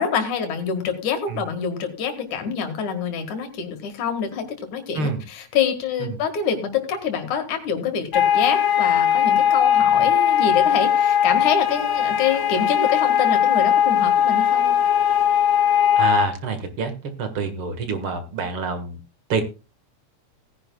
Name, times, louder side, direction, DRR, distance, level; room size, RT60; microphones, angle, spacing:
voice 1, 0.0-14.8, left 7 dB, 80° left, 6 dB, 3.2 m, -26 dB
sound 1, 8.1-16.3, left 9 dB, 50° left, 1.8 m, -19 dB
voice 2, 16.0-16.9 17.2-19.0 19.3-19.4, right 4 dB, 50° right, 8 dB, 2.2 m, -26 dB
18.5 x 10.5 x 2.3 m, 0.31 s
omnidirectional pair, 3.3 m